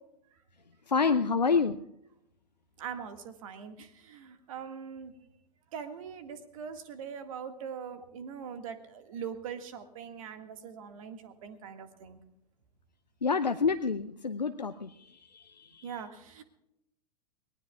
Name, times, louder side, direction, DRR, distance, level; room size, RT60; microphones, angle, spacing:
voice 1, 0.9-1.8 13.2-14.9, left 5 dB, 85° left, 9 dB, 0.6 m, -27 dB
voice 2, 2.8-5.1 5.7-12.2 15.8-16.4, right 7 dB, 55° right, 8 dB, 1.8 m, -42 dB
23.5 x 19.0 x 2.4 m, 0.84 s
figure-of-eight pair, 100°, 21 cm